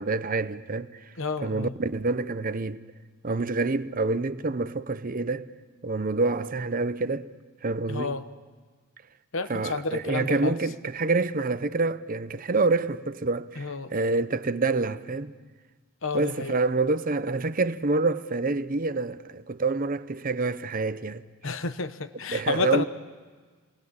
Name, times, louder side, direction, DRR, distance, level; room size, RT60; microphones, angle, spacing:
voice 1, 0.0-1.0 1.4-2.8 3.2-5.5 5.8-7.3 7.6-8.2 9.5-15.3 16.1-21.2 22.3-22.8, right 3 dB, 40° right, 0.7 m, -27 dB
voice 2, 1.2-1.7 7.9-8.2 9.3-10.6 13.6-13.9 16.0-16.6 21.4-22.9, left 4 dB, 60° left, 1.0 m, -30 dB
29.0 x 21.5 x 8.8 m
head